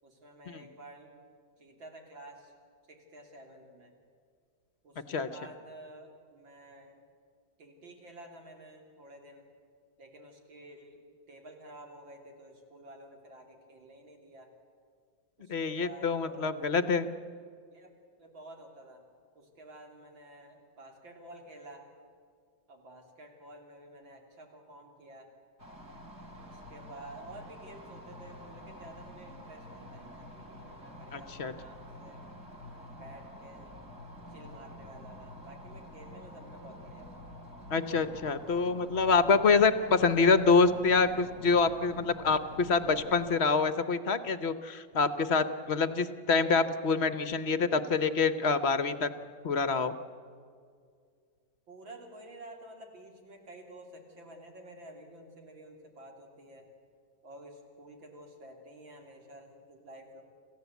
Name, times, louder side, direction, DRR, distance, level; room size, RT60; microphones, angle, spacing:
voice 1, 0.0-1.3 1.6-2.5 2.9-3.9 4.8-7.0 7.6-9.4 10.0-14.5 15.4-16.9 17.7-17.9 18.2-19.0 19.4-21.8 22.7-25.3 26.5-32.2 33.0-33.8 34.3-37.2 51.7-56.7 57.2-60.2, right 1 dB, 90° right, 2 dB, 3.8 m, -51 dB
voice 2, 15.5-17.1 31.1-31.5 37.7-49.1 49.4-49.9, left 4 dB, 45° left, 12 dB, 0.9 m, -26 dB
sound 1, 25.6-43.4, left 1 dB, 40° right, 3.2 m, -48 dB
27.5 x 15.5 x 8.2 m, 2.2 s
omnidirectional pair, 2.0 m